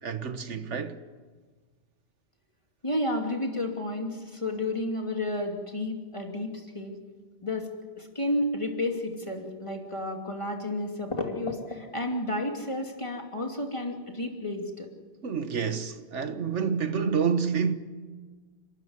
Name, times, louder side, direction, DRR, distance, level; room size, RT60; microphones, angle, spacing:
voice 1, 0.0-1.0 15.2-17.7, right 6 dB, 75° right, 1.5 m, -28 dB
voice 2, 2.8-6.9 7.4-7.7 8.0-14.9, left 1 dB, 25° left, 2.8 m, -31 dB
29.5 x 13.5 x 9.8 m
omnidirectional pair, 1.2 m